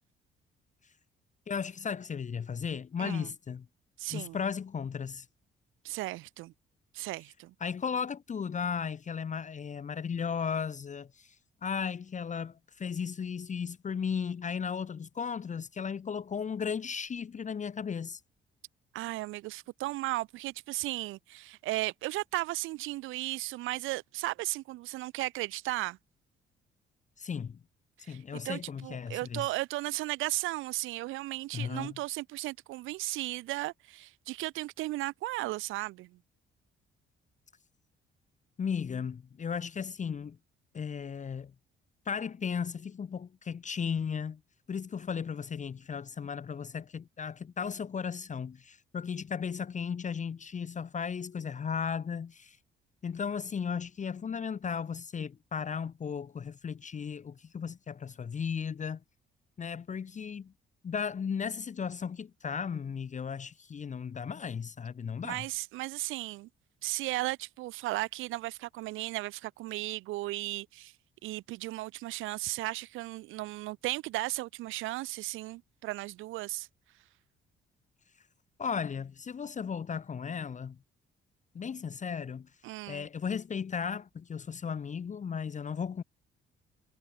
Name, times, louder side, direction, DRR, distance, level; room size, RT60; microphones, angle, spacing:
voice 1, 1.5-3.6 4.1-5.3 7.6-11.4 11.6-18.2 27.2-27.6 28.1-29.5 31.5-32.0 38.6-40.4 40.7-41.5 42.1-44.4 44.7-52.6 53.0-59.0 59.6-60.5 60.8-65.5 78.6-80.8 81.5-82.5 82.9-86.0, left 6 dB, 40° left, 1.0 m, -35 dB
voice 2, 3.0-3.3 4.0-4.4 5.8-6.5 6.9-7.5 18.9-26.0 28.0-36.1 65.2-66.5 66.8-70.9 71.2-76.7 82.6-83.1, right 18 dB, 85° right, 0.4 m, -35 dB
cardioid pair, 90°, 20 cm